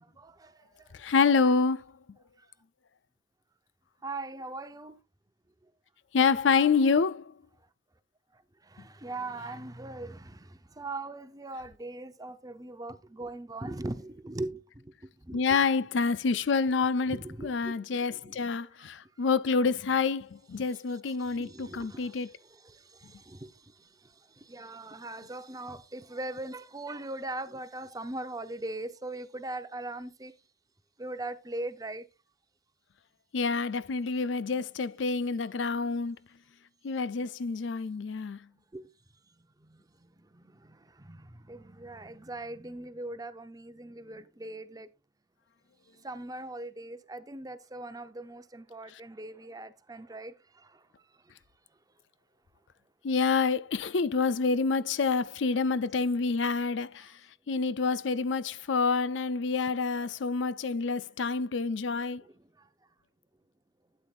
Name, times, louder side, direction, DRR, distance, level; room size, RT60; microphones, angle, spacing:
voice 1, 0.0-0.9 4.0-5.0 8.6-15.6 17.1-18.4 21.1-30.3 31.0-32.1 38.7-38.9 39.6-44.9 46.0-50.9 62.2-62.7, right 2 dB, 20° right, 0.8 m, -41 dB
voice 2, 0.9-1.8 6.1-7.3 15.3-22.3 33.3-36.2 36.8-38.4 53.0-57.1 57.5-62.2, left 4 dB, 80° left, 0.5 m, -27 dB
12.0 x 8.9 x 2.5 m
head